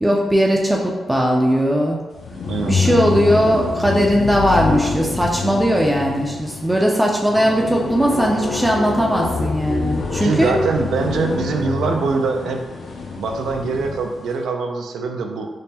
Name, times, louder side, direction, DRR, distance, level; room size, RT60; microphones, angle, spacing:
voice 1, 0.0-2.0 2.6-10.6 11.9-12.0, equal, 10° right, -1 dB, 0.4 m, -18 dB
sound 1, 2.1-14.2, left 4 dB, 55° left, 0.5 m, -26 dB
voice 2, 2.5-2.8 10.2-12.6 13.2-15.5, right 4 dB, 90° right, 3 dB, 0.4 m, -23 dB
5.2 x 2.0 x 2.8 m, 1.2 s
cardioid pair, 120°, 0 cm